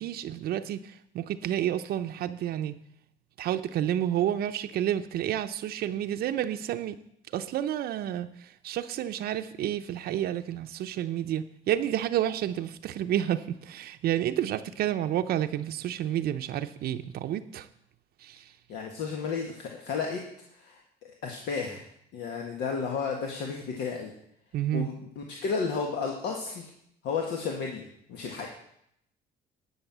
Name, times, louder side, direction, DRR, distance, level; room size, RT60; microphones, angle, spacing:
voice 1, 0.0-2.7 3.4-7.0 7.3-17.7 18.2-18.5 24.5-24.9, right 11 dB, 65° right, 8 dB, 0.6 m, -30 dB
voice 2, 18.7-20.2 20.5-21.9 22.1-24.1 24.7-26.7 27.0-28.5, left 5 dB, 80° left, 1 dB, 1.6 m, -33 dB
11.0 x 6.4 x 7.3 m, 0.73 s
cardioid pair, 110°, 17 cm